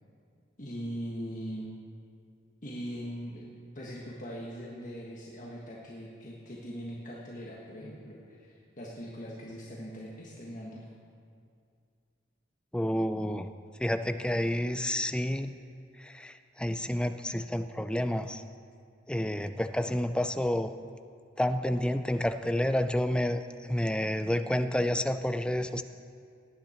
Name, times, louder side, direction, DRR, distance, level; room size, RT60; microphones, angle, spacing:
voice 1, 0.6-1.7 2.6-10.8, equal, 45° left, -4 dB, 1.5 m, -41 dB
voice 2, 12.7-13.5 13.8-15.5 16.0-18.4 19.1-20.7 21.4-25.8, left 1 dB, 5° left, 9 dB, 0.4 m, -29 dB
18.5 x 10.0 x 4.4 m, 2.3 s
head